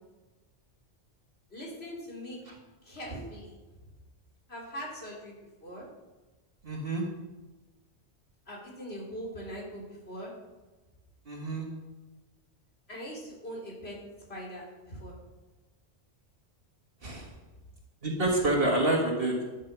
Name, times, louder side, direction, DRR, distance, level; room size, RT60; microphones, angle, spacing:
voice 1, 1.5-2.4 2.8-3.6 4.5-5.3 5.6-5.8 8.5-10.3 12.9-14.0 14.3-15.1, equal, 60° left, -3 dB, 3.3 m, -41 dB
voice 2, 6.6-7.0 11.3-11.7 17.0-17.3 18.0-19.4, right 2 dB, 50° right, -1 dB, 1.9 m, -27 dB
11.0 x 6.6 x 6.1 m, 1.2 s
omnidirectional pair, 1.2 m